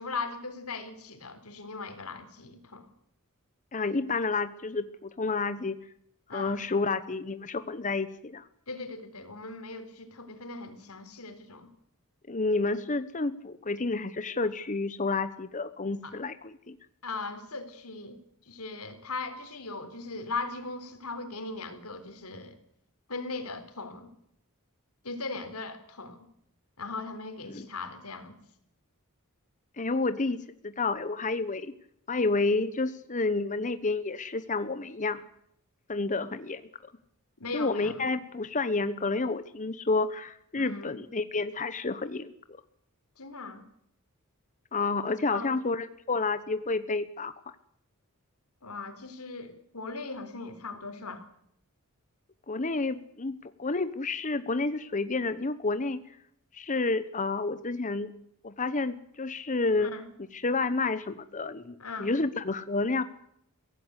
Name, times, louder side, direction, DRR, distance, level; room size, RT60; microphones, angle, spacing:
voice 1, 0.0-2.9 6.3-6.6 8.7-11.7 16.0-16.1 17.0-18.2 18.5-22.6 23.1-24.1 25.0-26.3 26.8-28.4 37.4-38.0 40.5-41.0 43.2-43.6 45.3-45.5 48.6-51.2 59.8-60.1 61.8-62.1, left 3 dB, 90° left, 9 dB, 3.9 m, -39 dB
voice 2, 3.7-5.8 6.3-8.5 12.3-16.8 27.4-27.6 29.8-30.4 30.6-31.7 32.1-35.2 35.9-36.6 37.5-42.3 44.7-47.3 52.5-56.0 56.5-58.1 58.4-59.9 60.3-63.0, left 3 dB, 35° left, 12 dB, 1.0 m, -30 dB
24.0 x 17.0 x 8.1 m, 0.71 s
head